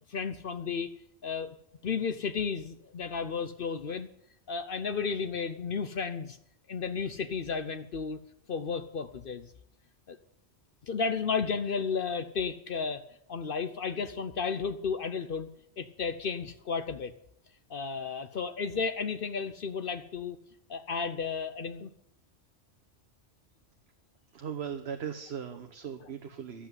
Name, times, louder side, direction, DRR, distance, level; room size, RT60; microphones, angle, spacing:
voice 1, 0.1-0.9 1.2-1.5 1.8-4.1 4.5-6.4 6.7-8.2 8.5-9.5 10.1-10.2 10.8-13.0 13.3-15.5 15.8-17.1 17.7-20.4 20.7-21.9, left 5 dB, 55° left, 11 dB, 0.9 m, -33 dB
voice 2, 24.3-26.7, right 7 dB, 65° right, 5 dB, 1.2 m, -38 dB
11.5 x 8.3 x 9.5 m, 0.75 s
omnidirectional pair, 1.2 m